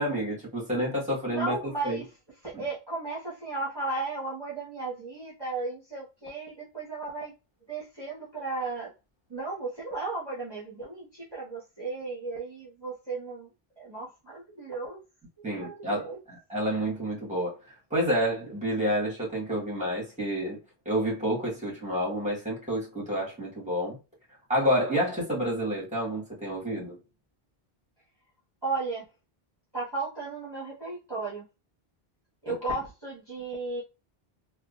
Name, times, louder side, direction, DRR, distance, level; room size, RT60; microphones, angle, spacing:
voice 1, 0.0-1.6 1.8-2.0 2.5-2.6 15.4-20.6 20.8-24.0 24.5-27.0 32.5-32.6, equal, 5° right, 1.6 m, -29 dB
voice 2, 1.3-2.0 2.4-7.3 7.7-8.9 9.3-13.5 13.8-15.0 15.6-16.2 28.6-29.0 29.7-31.4 32.4-33.8, right 3 dB, 25° right, 1.3 m, -35 dB
3.6 x 2.8 x 2.5 m
omnidirectional pair, 1.1 m